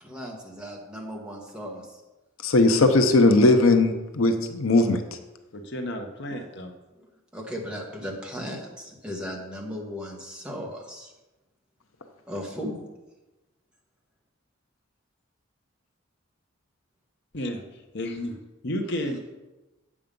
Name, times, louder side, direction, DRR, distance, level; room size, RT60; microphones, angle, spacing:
voice 1, 0.0-1.9 7.3-11.1 12.3-12.8, equal, 5° right, -2 dB, 1.6 m, -36 dB
voice 2, 2.4-5.0, left 2 dB, 75° left, 6 dB, 0.8 m, -19 dB
voice 3, 5.5-6.7 17.3-17.6 17.9-18.4 18.6-19.3, left 1 dB, 55° left, 4 dB, 1.1 m, -32 dB
8.5 x 7.4 x 5.3 m, 1.1 s
head